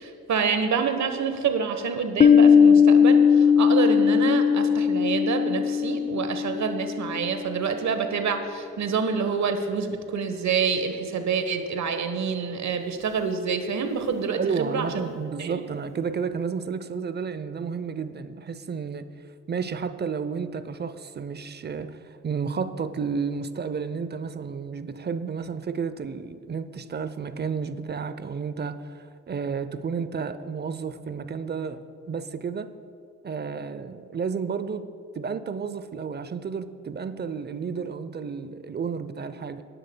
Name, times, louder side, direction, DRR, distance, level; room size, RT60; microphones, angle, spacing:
voice 1, 0.0-14.9 15.4-15.6, right 6 dB, 55° right, 8 dB, 1.2 m, -27 dB
Piano, 2.2-7.6, left 7 dB, 20° left, 0.5 m, -19 dB
voice 2, 14.4-19.1 19.5-22.0 22.2-31.8 32.1-32.7 33.2-34.9 35.1-39.6, right 5 dB, 30° right, 12 dB, 0.6 m, -31 dB
19.0 x 10.0 x 2.3 m, 2.4 s
hypercardioid pair, 50°, 35 cm